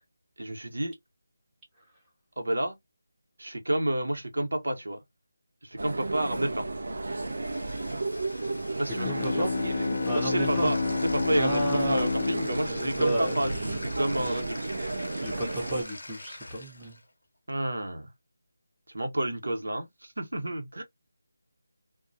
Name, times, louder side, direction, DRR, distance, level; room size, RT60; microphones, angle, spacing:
voice 1, 0.4-0.9 2.4-2.8 3.4-5.0 5.6-6.7 8.8-9.4 10.1-10.8 11.1-14.7 17.5-18.1 18.9-20.8, right 1 dB, 85° right, 0.9 m, -30 dB
sound 1, 5.8-15.8, right 2 dB, 65° right, 0.5 m, -33 dB
Bathtub (filling or washing), 7.0-17.1, left 2 dB, 80° left, 0.8 m, -44 dB
Bowed string instrument, 8.9-14.0, left 4 dB, 45° left, 0.3 m, -30 dB
voice 2, 9.0-9.5 10.1-10.7 11.3-12.1 12.4-14.4 15.2-17.0, right 1 dB, 10° right, 0.7 m, -32 dB
2.3 x 2.1 x 2.6 m
figure-of-eight pair, 170°, 0 cm